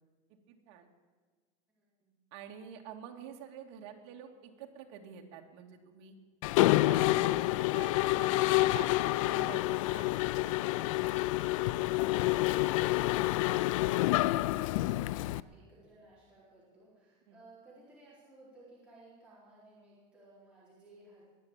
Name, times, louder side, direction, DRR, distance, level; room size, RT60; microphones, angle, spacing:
voice 1, 0.3-0.9 2.3-6.2 6.5-10.1 10.4-10.6 17.3-17.4, right 8 dB, 55° right, 2 dB, 2.3 m, -48 dB
voice 2, 1.7-2.1 11.8-21.2, right 2 dB, 5° right, -9 dB, 4.3 m, -58 dB
Mechanisms, 6.4-15.4, left 18 dB, 80° left, 0.4 m, -28 dB
21.0 x 7.1 x 8.9 m, 1.5 s
supercardioid pair, 165°, 16 cm